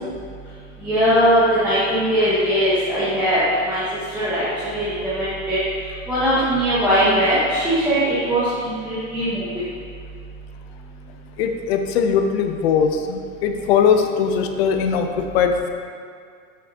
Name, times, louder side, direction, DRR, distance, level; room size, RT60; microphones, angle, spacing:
voice 1, 0.8-3.8 4.1-5.6 6.1-9.6, equal, 5° right, -14 dB, 1.0 m, -20 dB
voice 2, 11.4-15.7, left 6 dB, 50° left, 6 dB, 0.5 m, -20 dB
6.0 x 5.8 x 2.8 m, 2.2 s
supercardioid pair, 150°, 40 cm